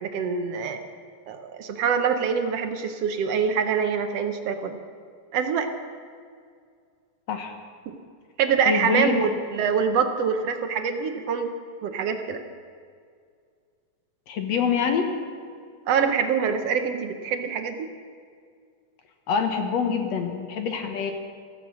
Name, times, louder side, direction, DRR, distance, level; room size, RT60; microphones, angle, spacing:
voice 1, 0.0-0.8 1.3-4.8 5.3-5.7 7.9-8.0 8.4-11.5 11.8-12.4 15.9-17.9, right 6 dB, 65° right, 7 dB, 1.6 m, -25 dB
voice 2, 8.6-9.3 14.3-15.1 19.3-21.1, left 6 dB, 60° left, 5 dB, 2.2 m, -25 dB
15.5 x 15.0 x 6.3 m, 2.1 s
omnidirectional pair, 3.7 m